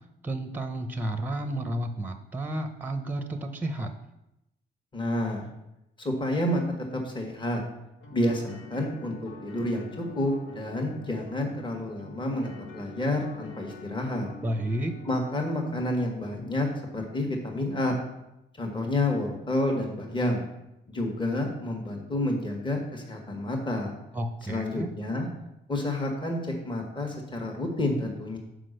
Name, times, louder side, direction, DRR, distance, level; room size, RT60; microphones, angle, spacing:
voice 1, 0.2-3.9 14.4-15.0 24.1-24.9, right 1 dB, 10° right, 8 dB, 0.7 m, -31 dB
voice 2, 4.9-5.5 6.0-6.6 6.9-7.6 8.1-14.3 15.1-18.0 18.6-20.4 20.9-23.9 24.5-25.3 25.7-28.4, left 1 dB, 25° left, 1 dB, 1.5 m, -29 dB
sound 1, 8.0-16.0, left 2 dB, 75° left, 1.5 m, -46 dB
6.0 x 5.0 x 6.5 m, 0.88 s
cardioid pair, 90°, 20 cm